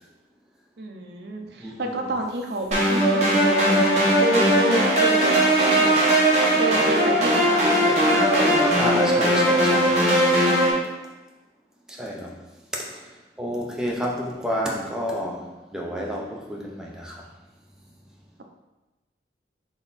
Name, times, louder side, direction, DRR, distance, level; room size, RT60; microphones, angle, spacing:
voice 1, 0.8-5.9 6.6-8.8, right 2 dB, 60° right, 3 dB, 0.6 m, -30 dB
voice 2, 1.6-2.1 3.2-3.3 8.8-10.0 11.9-12.4 12.7-13.1 13.4-17.2, equal, 5° right, -2 dB, 0.6 m, -30 dB
sound 1, 2.7-10.7, right 1 dB, 35° right, 1.1 m, -19 dB
3.8 x 3.4 x 4.0 m, 1.1 s
head